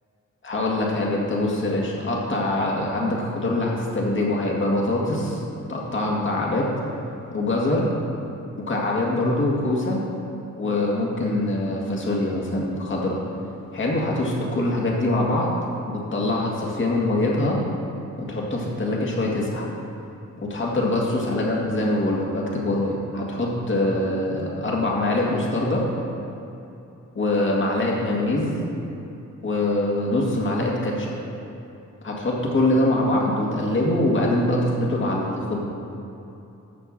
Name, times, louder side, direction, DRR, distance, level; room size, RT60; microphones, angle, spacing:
voice 1, 0.4-5.4 5.7-6.7 7.3-7.9 8.6-10.0 10.6-13.2 13.7-15.5 15.9-17.6 18.2-19.7 20.4-25.8 27.1-28.6 29.4-31.1 32.0-35.6, left 1 dB, 40° left, -3 dB, 2.0 m, -23 dB
13.5 x 4.6 x 7.4 m, 2.9 s
wide cardioid pair, 150°, 32 cm